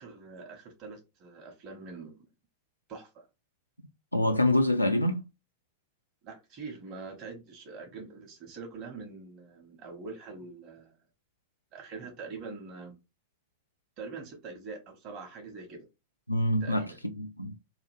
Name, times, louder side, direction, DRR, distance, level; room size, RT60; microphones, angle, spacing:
voice 1, 0.0-2.2 2.9-3.2 6.2-10.9 11.7-12.9 14.0-15.9 16.6-17.0, right 4 dB, 35° right, 1.0 m, -44 dB
voice 2, 4.1-5.2 16.3-17.5, left 1 dB, 90° left, 0.3 m, -26 dB
2.8 x 2.4 x 3.1 m
figure-of-eight pair, 90°, 0 cm